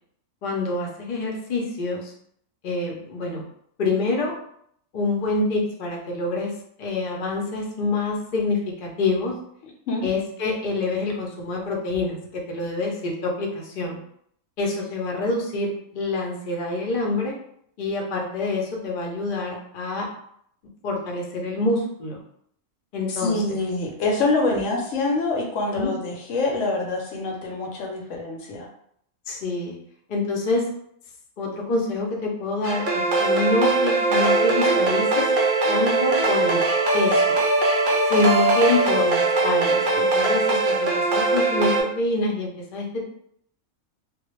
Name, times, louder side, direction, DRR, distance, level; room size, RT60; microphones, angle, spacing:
voice 1, 0.4-2.1 2.6-3.4 3.8-4.3 4.9-6.5 6.8-9.3 10.0-14.0 14.6-17.3 17.8-20.1 20.8-22.2 22.9-23.6 24.5-24.6 25.7-25.9 29.3-29.8 30.1-30.6 31.4-35.3 35.7-36.6 36.9-37.4 38.1-43.0, left 2 dB, 55° left, -1 dB, 0.6 m, -26 dB
voice 2, 23.2-28.7, left 3 dB, 70° left, 0 dB, 0.9 m, -25 dB
sound 1, 32.6-41.8, right 3 dB, 70° right, 0.5 m, -21 dB
2.2 x 2.0 x 3.0 m, 0.69 s
omnidirectional pair, 1.4 m